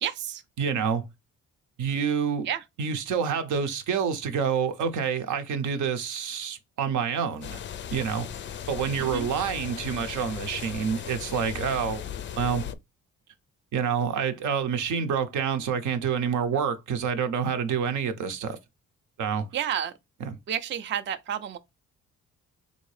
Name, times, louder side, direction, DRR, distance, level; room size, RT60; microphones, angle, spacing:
voice 1, 0.0-0.4 2.4-2.6 9.0-9.3 19.5-19.9 20.5-21.6, right 9 dB, 40° right, 0.4 m, -30 dB
voice 2, 0.6-1.0 1.8-2.5 2.8-7.6 7.9-8.3 8.7-12.0 12.4-12.7 13.7-18.6 19.2-19.5 20.3-20.4, right 7 dB, 75° right, 0.7 m, -27 dB
sound 1, 7.4-12.7, left 9 dB, 40° left, 0.4 m, -37 dB
3.6 x 2.7 x 3.2 m
cardioid pair, 90°, 30 cm